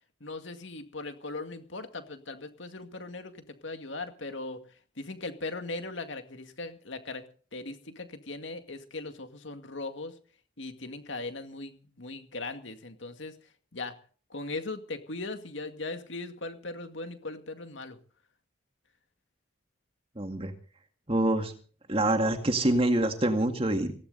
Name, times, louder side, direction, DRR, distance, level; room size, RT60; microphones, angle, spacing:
voice 1, 0.2-4.6 5.0-7.2 7.5-10.1 10.6-13.3 13.7-13.9 14.3-18.0, left 3 dB, 70° left, 7 dB, 2.1 m, -39 dB
voice 2, 20.2-20.5 21.1-21.5 21.9-24.0, right 1 dB, 30° right, 5 dB, 2.1 m, -26 dB
19.0 x 16.0 x 4.1 m, 0.43 s
head